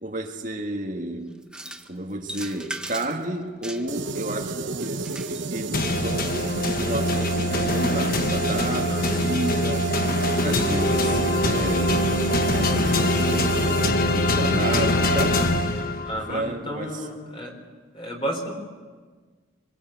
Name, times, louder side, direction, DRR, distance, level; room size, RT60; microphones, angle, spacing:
voice 1, 0.0-1.3 1.9-6.3 6.8-9.9 10.4-12.1 12.5-13.6 14.1-15.5 16.3-17.1, right 1 dB, 45° right, 2 dB, 1.9 m, -31 dB
sound 1, 1.4-1.9 2.2-3.2 3.6-4.1 4.8-5.5, right 1 dB, 5° right, 1.1 m, -37 dB
sound 2, 3.9-13.9, right 3 dB, 75° right, 1.0 m, -32 dB
sound 3, 5.7-16.3, left 1 dB, 50° left, 1.3 m, -23 dB
voice 2, 8.9-9.2 11.0-11.5 15.8-17.5 17.9-18.5, equal, 25° left, 2 dB, 4.3 m, -33 dB
25.5 x 22.0 x 8.2 m, 1.5 s
head